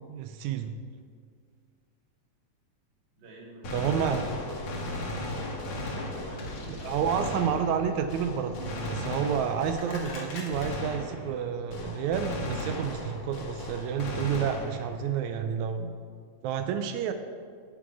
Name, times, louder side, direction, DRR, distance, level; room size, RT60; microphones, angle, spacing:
voice 1, 0.1-0.8 3.7-4.2 6.7-16.0 16.4-17.1, right 8 dB, 90° right, 7 dB, 1.6 m, -30 dB
voice 2, 3.2-4.8 5.7-6.7, equal, 35° right, -2 dB, 2.4 m, -47 dB
Gunshot gunfire, 3.6-11.4 11.7-15.1, left 1 dB, 55° left, 2.4 m, -36 dB
17.0 x 6.2 x 4.7 m, 2.1 s
omnidirectional pair, 3.9 m